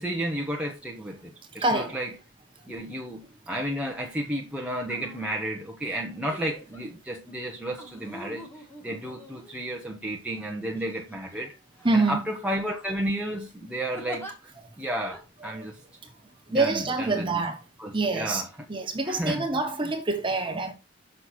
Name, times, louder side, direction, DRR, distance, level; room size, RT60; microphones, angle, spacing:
voice 1, 0.0-2.1 2.6-11.5 11.9-14.3 14.8-15.8 16.5-17.4 17.8-18.5 19.1-19.5, right 1 dB, 5° right, 0.9 m, -32 dB
voice 2, 1.6-2.0 11.8-12.2 15.5-15.6 16.5-17.6 17.9-18.4 18.7-20.7, right 3 dB, 25° right, 1.4 m, -26 dB
sound 1, 4.1-4.3 4.8-5.5 6.3-6.8 7.8-9.8 10.6-11.4 11.8-12.0 12.4-13.0 13.9-14.3 15.1-15.2, equal, 10° left, 1.8 m, -44 dB
6.5 x 6.0 x 4.3 m
head